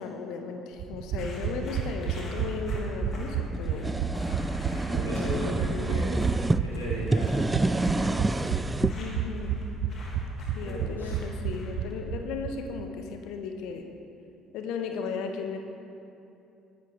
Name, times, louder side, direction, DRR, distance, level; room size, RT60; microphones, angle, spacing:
voice 1, 0.0-3.9 5.1-6.0 8.9-9.6 10.5-13.8 14.5-15.6, left 5 dB, 60° left, 5 dB, 1.3 m, -36 dB
sound 1, 0.8-12.5 12.8-12.9 13.1-13.2, right 7 dB, 55° right, 0.7 m, -31 dB
sound 2, 1.1-11.9, left 1 dB, 45° left, 2.9 m, -48 dB
sound 3, 3.5-6.6 7.0-8.9, right 2 dB, 15° right, 0.4 m, -28 dB
voice 2, 4.6-8.3 10.6-11.2, equal, 80° left, -7 dB, 3.5 m, -36 dB
20.0 x 11.0 x 3.9 m, 2.7 s
figure-of-eight pair, 50°, 0 cm